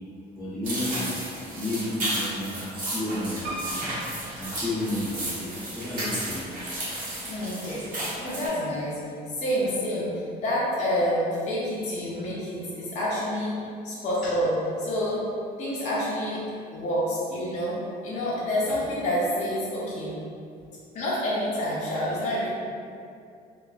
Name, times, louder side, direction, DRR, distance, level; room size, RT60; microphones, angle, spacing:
voice 1, 0.3-1.2 1.5-3.9 4.3-6.5 14.2-14.3, left 1 dB, 5° right, -17 dB, 1.0 m, -32 dB
sound 1, 0.6-8.5, right 1 dB, 55° right, 1.0 m, -33 dB
Piano, 3.4-5.4 6.0-6.8 7.1-7.2 7.4-7.5, right 2 dB, 75° right, 0.7 m, -39 dB
voice 2, 7.2-7.8 8.2-13.6 13.8-14.5 14.8-15.2 15.6-16.4 16.7-17.8 18.0-20.2 20.9-22.5, equal, 45° left, -8 dB, 0.6 m, -28 dB
2.9 x 2.1 x 2.4 m, 2.4 s
cardioid pair, 110°, 17 cm